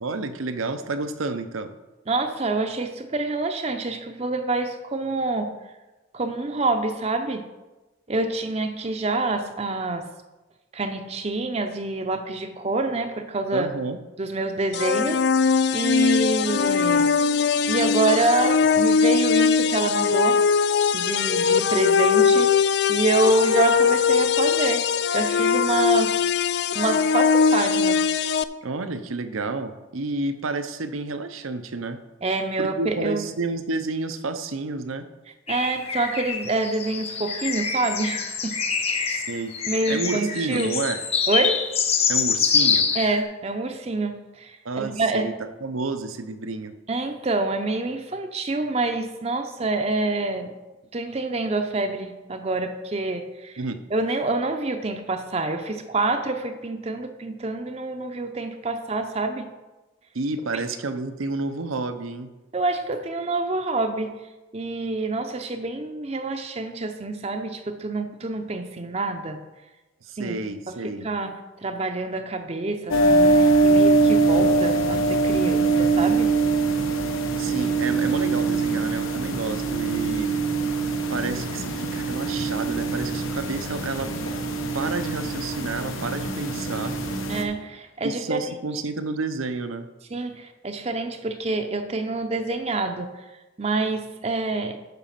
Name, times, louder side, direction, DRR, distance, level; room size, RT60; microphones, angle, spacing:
voice 1, 0.0-1.7 13.5-14.0 28.6-32.0 32.6-35.1 39.1-39.6 39.9-41.0 42.1-42.9 44.6-45.3 45.6-46.7 53.6-53.8 60.1-62.3 70.0-71.1 77.4-80.4 81.1-84.1 84.7-87.0 88.0-89.9, right 3 dB, 90° right, 10 dB, 0.7 m, -30 dB
voice 2, 2.1-5.5 6.1-7.5 8.1-10.1 10.7-13.7 14.2-15.3 15.7-17.1 17.7-20.4 20.9-22.5 22.9-24.8 25.1-26.2 26.7-28.1 32.2-33.2 35.5-39.2 39.7-40.7 41.3-41.6 42.9-45.3 46.9-50.5 50.9-53.6 53.9-59.5 60.5-60.6 62.5-64.1 64.5-69.4 70.2-70.4 70.7-76.3 87.3-88.4 90.1-93.1 93.6-94.8, right 2 dB, 30° right, 6 dB, 0.6 m, -27 dB
sound 1, 14.7-28.4, left 6 dB, 55° left, 0.3 m, -21 dB
sound 2, 35.5-43.2, left 6 dB, 30° left, 0.9 m, -25 dB
sound 3, 72.9-87.4, right 3 dB, 90° left, 1.2 m, -23 dB
9.2 x 6.1 x 5.8 m, 1.1 s
head